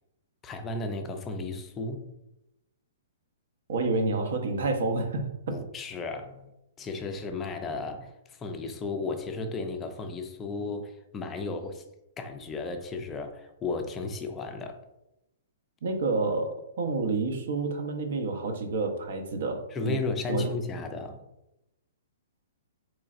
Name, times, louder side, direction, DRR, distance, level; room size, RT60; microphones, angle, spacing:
voice 1, 0.4-2.1 5.5-6.4 6.8-11.8 12.2-14.8 19.7-21.2, left 3 dB, 15° left, 0.4 m, -34 dB
voice 2, 3.7-5.6 15.8-20.0 20.3-20.5, right 3 dB, 65° right, 0.7 m, -29 dB
3.9 x 3.1 x 2.4 m
hypercardioid pair, 160°, 0 cm